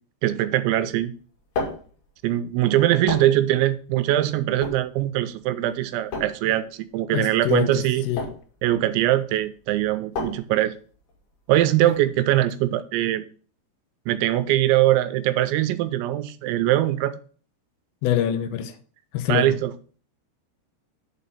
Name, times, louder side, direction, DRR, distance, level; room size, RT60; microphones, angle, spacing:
voice 1, 0.2-1.1 2.2-8.0 8.6-10.7 11.5-13.3 14.1-17.1 19.3-19.7, right 14 dB, 85° right, 3.0 m, -22 dB
sound 1, 1.1-12.7, left 3 dB, 55° left, 3.5 m, -35 dB
voice 2, 7.1-8.3 18.0-18.7 19.1-19.6, left 11 dB, 80° left, 2.9 m, -25 dB
7.6 x 4.2 x 5.5 m
omnidirectional pair, 5.2 m